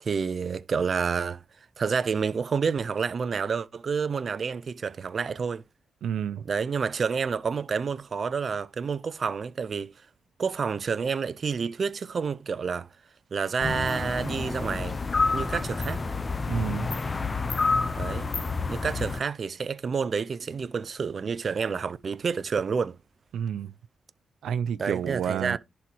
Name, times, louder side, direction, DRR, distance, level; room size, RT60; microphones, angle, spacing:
voice 1, 0.0-1.4 1.8-5.6 6.5-9.9 10.4-12.9 13.3-15.0 15.3-16.0 17.9-18.3 18.7-23.0 24.8-25.6, right 5 dB, 45° right, 0.7 m, -29 dB
voice 2, 6.0-6.5 16.5-16.9 23.3-23.7 24.4-25.6, right 8 dB, 85° right, 0.5 m, -30 dB
sound 1, 13.6-19.2, left 4 dB, 30° left, 0.8 m, -28 dB
11.0 x 4.5 x 4.6 m
cardioid pair, 105°, 0 cm